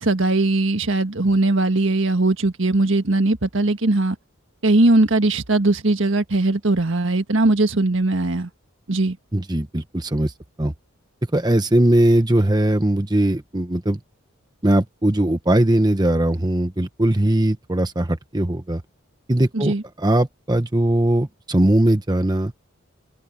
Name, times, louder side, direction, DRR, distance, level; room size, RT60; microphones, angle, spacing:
voice 1, 0.0-4.1 4.6-8.5 8.9-9.2 19.5-19.8, right 2 dB, 60° right, 1.6 m, -19 dB
voice 2, 9.3-10.3 10.6-10.7 11.3-14.0 14.6-18.8 19.3-22.5, right 1 dB, 20° right, 1.0 m, -19 dB
head